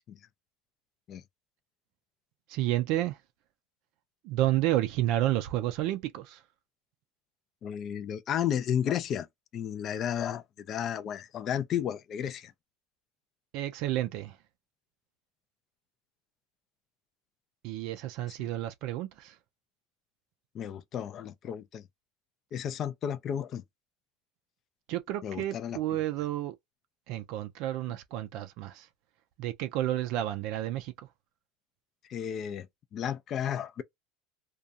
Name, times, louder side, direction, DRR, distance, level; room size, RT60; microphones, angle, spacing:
voice 1, 2.5-3.2 4.2-6.4 13.5-14.3 17.6-19.3 24.9-26.5 27.1-28.9 29.4-30.9, right 14 dB, 60° right, 0.3 m, -30 dB
voice 2, 7.6-9.3 9.5-12.5 20.5-21.8 22.5-23.6 25.2-25.8 32.1-32.7 32.9-33.8, left 9 dB, 35° left, 0.4 m, -33 dB
2.4 x 2.2 x 2.7 m
supercardioid pair, 145°, 0 cm